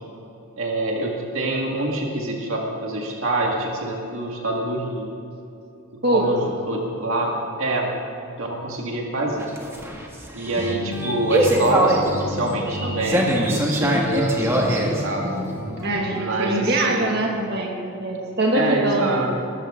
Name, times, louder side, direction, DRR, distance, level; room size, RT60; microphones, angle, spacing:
voice 1, 0.6-5.1 6.1-7.3 7.6-7.9 8.3-9.5 10.3-15.3 16.1-17.1 18.5-19.3, right 2 dB, 65° right, -1 dB, 1.9 m, -25 dB
sound 1, 9.3-16.2, right 1 dB, 10° right, 1.6 m, -23 dB
voice 2, 15.8-19.2, right 2 dB, 50° right, -1 dB, 2.1 m, -23 dB
22.0 x 13.5 x 3.8 m, 2.8 s
head